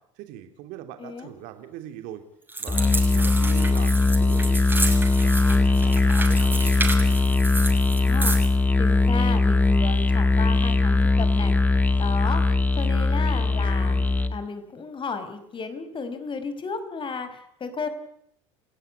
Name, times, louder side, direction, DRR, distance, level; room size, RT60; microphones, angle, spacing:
voice 1, 0.2-2.2 2.6-4.6 5.0-7.2, right 11 dB, 65° right, 7 dB, 3.2 m, -41 dB
voice 2, 1.0-1.3 8.0-8.4 8.8-14.0 14.3-17.9, left 5 dB, 35° left, 11 dB, 5.4 m, -33 dB
sound 1, 2.5-8.5, right 2 dB, 15° right, 7.0 m, -31 dB
Musical instrument, 2.7-14.4, left 3 dB, 10° left, 1.8 m, -20 dB
30.0 x 16.0 x 9.8 m, 0.71 s
hypercardioid pair, 80°, 15 cm